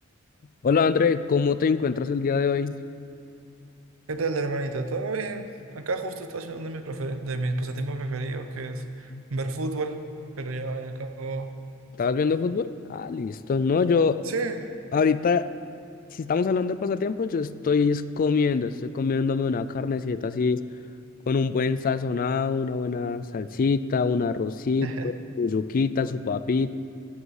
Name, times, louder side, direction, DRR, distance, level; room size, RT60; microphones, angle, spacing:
voice 1, 0.6-2.8 9.1-9.2 12.0-14.2 14.9-15.5 16.1-20.6 21.3-26.7, left 5 dB, 40° left, 14 dB, 0.4 m, -24 dB
voice 2, 4.1-5.5 5.7-10.0 10.4-11.5 14.3-14.7 24.8-25.1, right 3 dB, 70° right, 8 dB, 0.8 m, -30 dB
14.0 x 7.7 x 4.9 m, 2.7 s
head